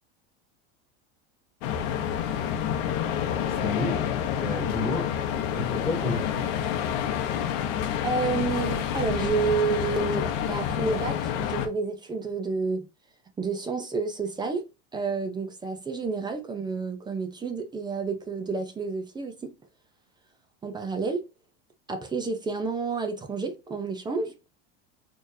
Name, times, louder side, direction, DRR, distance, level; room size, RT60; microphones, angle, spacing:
sound 1, 1.6-11.7, left 9 dB, 50° left, 0.8 m, -28 dB
voice 1, 3.5-4.0 4.4-5.1 5.4-6.5, left 1 dB, ahead, 2.1 m, -32 dB
voice 2, 8.0-12.9 13.4-14.6 14.9-19.5 20.6-21.2 21.9-24.3, right 4 dB, 15° right, 0.5 m, -29 dB
4.3 x 3.2 x 2.6 m
supercardioid pair, 140°, 32 cm